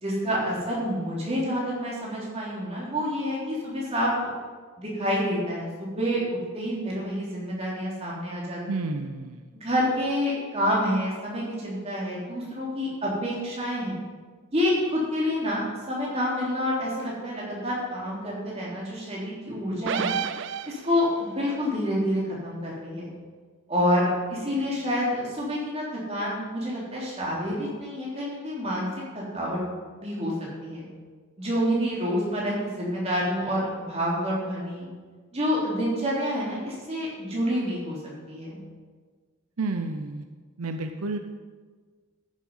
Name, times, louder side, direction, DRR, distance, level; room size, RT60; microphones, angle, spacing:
voice 1, 0.0-4.3 4.8-6.2 6.5-8.6 9.5-14.0 14.5-20.2 20.7-23.1 23.7-28.9 29.1-29.6 30.0-30.3 30.6-30.9 31.4-34.9 35.3-38.0 38.3-38.6, equal, 30° right, -5 dB, 3.5 m, -28 dB
voice 2, 8.7-9.4 39.6-40.2 40.6-41.2, right 3 dB, 85° right, 6 dB, 0.7 m, -30 dB
sound 1, 19.9-21.2, right 7 dB, 55° right, 0.4 m, -30 dB
14.5 x 7.4 x 5.6 m, 1.5 s
head